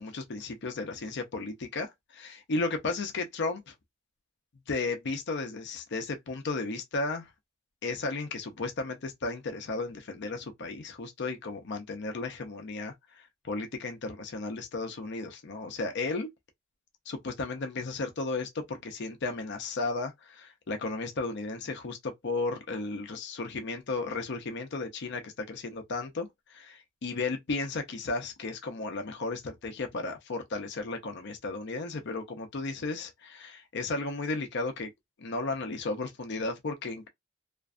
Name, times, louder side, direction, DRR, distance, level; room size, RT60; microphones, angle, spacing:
voice 1, 0.0-3.7 4.7-7.3 7.8-16.3 17.1-34.9 35.2-37.1, left 3 dB, 55° left, 0.5 m, -34 dB
2.5 x 2.2 x 2.4 m
head